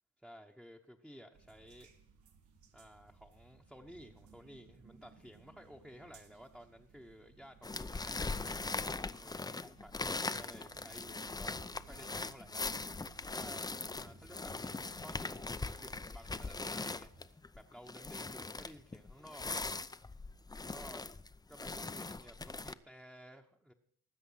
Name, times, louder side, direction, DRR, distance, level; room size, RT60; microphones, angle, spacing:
voice 1, 0.2-1.9 2.7-8.2 9.2-12.6 13.3-13.7 14.0-19.7 20.5-21.1 21.5-23.7, equal, ahead, 2 dB, 1.1 m, -55 dB
sound 1, 1.3-17.3, right 4 dB, 85° right, 2.1 m, -61 dB
sound 2, 7.6-22.7, left 3 dB, 15° left, 0.6 m, -41 dB
19.0 x 7.9 x 5.7 m, 0.66 s
cardioid pair, 90°, 30 cm